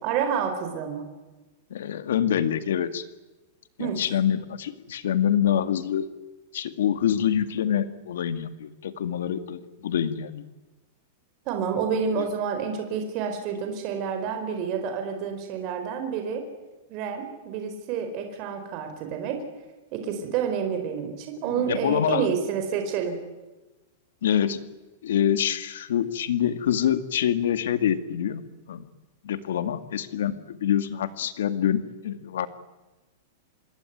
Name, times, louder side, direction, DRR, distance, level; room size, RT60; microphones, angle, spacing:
voice 1, 0.0-1.0 3.8-4.0 11.5-16.4 16.9-19.4 19.9-23.2, right 7 dB, 35° right, 5 dB, 4.2 m, -29 dB
voice 2, 1.7-3.0 3.8-6.1 6.5-10.4 12.2-12.3 21.6-22.3 24.2-24.6 25.0-28.4 28.7-28.9 29.2-32.5, left 9 dB, 85° left, 11 dB, 2.2 m, -26 dB
26.0 x 22.0 x 9.4 m, 1.1 s
supercardioid pair, 170°, 0 cm